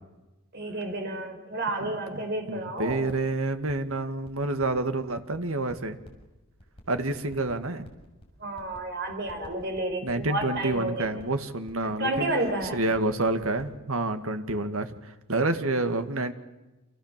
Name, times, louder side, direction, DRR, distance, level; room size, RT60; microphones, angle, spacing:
voice 1, 0.5-3.1 8.4-11.1 11.8-12.8, right 1 dB, 50° right, 4 dB, 5.3 m, -31 dB
voice 2, 1.8-2.2 2.5-6.0 6.9-7.9 10.0-12.3 12.7-16.3, right 2 dB, 75° right, 8 dB, 2.1 m, -28 dB
sound 1, 2.5-2.6 2.9-3.9 4.2-6.3 6.6-8.8 9.1-11.4 11.7-11.8 12.0-13.6, equal, 25° left, 6.3 m, -48 dB
28.5 x 27.5 x 7.5 m, 1.0 s
head